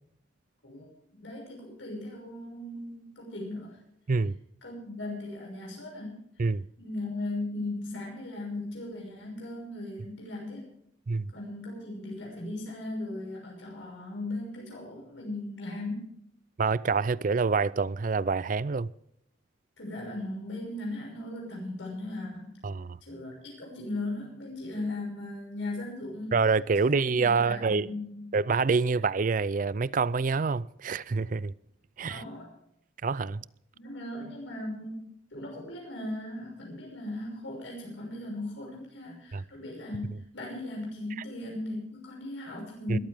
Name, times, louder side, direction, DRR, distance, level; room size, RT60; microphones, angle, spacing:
voice 1, 0.6-3.8 4.6-6.5 6.8-10.7 11.3-16.1 19.8-22.6 23.0-26.4 26.8-28.3 32.1-32.5 33.7-43.0, left 2 dB, 80° left, 6.1 m, -38 dB
voice 2, 16.6-18.9 22.6-23.0 26.3-27.9 28.3-31.5 32.0-32.2 33.0-33.4 39.3-39.4 42.9-43.0, right 4 dB, 45° right, 0.4 m, -26 dB
21.0 x 14.0 x 3.6 m
head